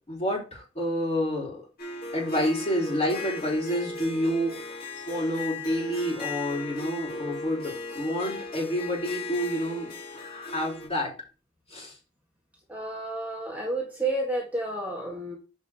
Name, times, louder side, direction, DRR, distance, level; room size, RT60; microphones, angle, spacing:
voice 1, 0.1-1.6 2.1-4.8 5.1-11.1 11.7-11.9, equal, 35° left, -2 dB, 3.8 m, -29 dB
Harp, 1.8-10.9, left 3 dB, 50° left, 2.9 m, -37 dB
voice 2, 12.7-15.4, right 2 dB, 10° right, -3 dB, 1.8 m, -31 dB
8.3 x 5.3 x 3.6 m, 0.32 s
head